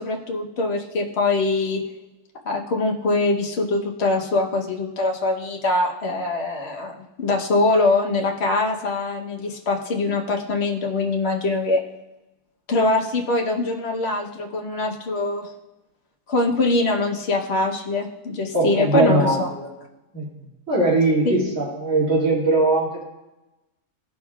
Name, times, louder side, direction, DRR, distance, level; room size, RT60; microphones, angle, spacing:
voice 1, 0.0-1.8 2.4-11.8 12.7-15.5 16.3-19.5 21.2-21.5, left 2 dB, 50° left, 0 dB, 1.2 m, -23 dB
voice 2, 18.5-19.7 20.1-20.3 20.7-23.0, right 2 dB, 60° right, -6 dB, 2.9 m, -20 dB
15.0 x 5.4 x 2.4 m, 1.0 s
omnidirectional pair, 1.5 m